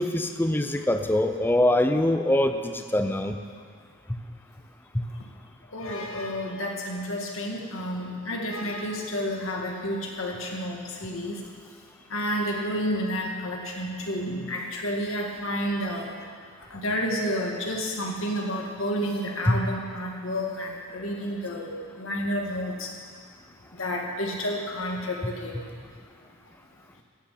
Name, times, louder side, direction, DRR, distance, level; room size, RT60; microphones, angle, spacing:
voice 1, 0.0-3.4 4.1-4.2 4.9-5.0 19.5-19.6, left 1 dB, 10° left, 7 dB, 0.6 m, -23 dB
voice 2, 5.7-11.4 12.1-16.1 16.7-22.9 23.8-25.6, equal, 65° left, 0 dB, 2.0 m, -30 dB
15.0 x 6.2 x 8.3 m, 2.1 s
head